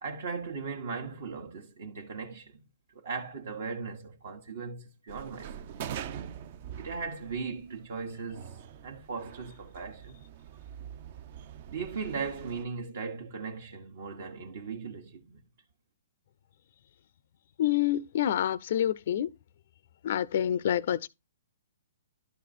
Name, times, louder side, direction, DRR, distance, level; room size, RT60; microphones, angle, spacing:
voice 1, 0.0-2.6 3.0-5.7 6.8-10.2 11.7-15.4, right 5 dB, 60° right, 1.2 m, -38 dB
sound 1, 5.1-12.6, right 9 dB, 40° right, 0.5 m, -44 dB
voice 2, 17.6-19.3 20.0-21.1, left 11 dB, 50° left, 0.4 m, -27 dB
11.5 x 4.2 x 4.2 m
hypercardioid pair, 165°, 0 cm